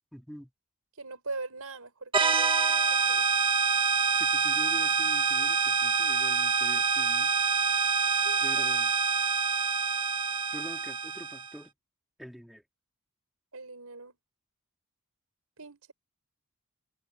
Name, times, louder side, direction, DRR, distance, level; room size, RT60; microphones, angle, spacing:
voice 1, 0.1-0.5 4.2-7.3 8.4-8.9 10.5-11.7 12.2-12.6, equal, ahead, 4.2 m, -45 dB
voice 2, 1.0-3.3 8.2-8.6 13.5-14.1 15.6-15.9, right 3 dB, 75° right, 5.8 m, -42 dB
sound 1, 2.1-11.5, right 5 dB, 25° right, 1.7 m, -26 dB
head